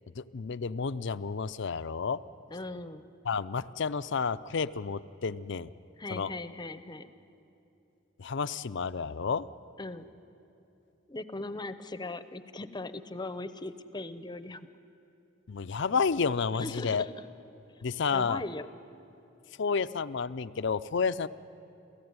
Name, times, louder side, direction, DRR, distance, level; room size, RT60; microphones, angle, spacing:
voice 1, 0.2-2.2 3.2-5.7 6.1-6.3 8.2-9.5 15.5-17.0 17.8-18.4 19.6-21.3, left 5 dB, 65° left, 14 dB, 0.6 m, -30 dB
voice 2, 2.5-3.0 6.0-7.1 9.8-10.0 11.1-14.6 16.5-17.1 18.1-18.7, left 2 dB, 20° left, 12 dB, 0.7 m, -39 dB
29.0 x 15.0 x 9.6 m, 2.8 s
head